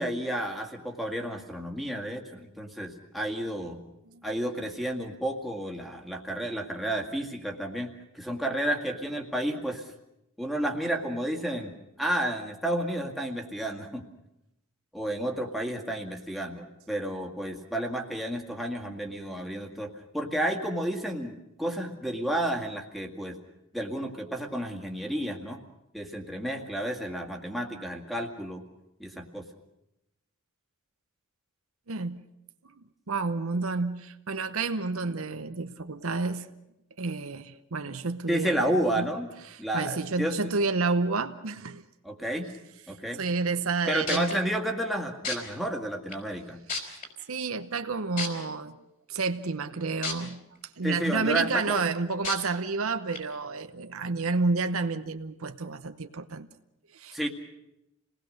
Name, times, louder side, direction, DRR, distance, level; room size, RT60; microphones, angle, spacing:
voice 1, 0.0-3.8 4.2-9.9 10.4-11.7 12.0-14.0 14.9-23.4 23.7-25.6 25.9-28.6 29.0-29.4 38.3-39.3 39.6-40.4 42.0-42.5 42.9-43.2 43.9-46.6 50.8-51.8 57.1-57.3, right 1 dB, ahead, 2.0 m, -31 dB
voice 2, 31.9-32.2 32.6-32.7 33.1-36.5 37.0-39.1 39.5-41.8 43.2-44.4 46.8-47.0 47.3-48.8 49.1-50.4 50.8-56.5 56.9-57.3, right 4 dB, 65° right, 0.9 m, -30 dB
sound 1, 43.7-43.8 44.1-44.3 45.2-45.4 46.1-46.2 46.7-47.1 48.2-48.3 50.0-50.1 50.6-50.7 52.2-52.4 53.1-53.2, left 4 dB, 40° left, 4.4 m, -30 dB
28.0 x 19.0 x 6.5 m
head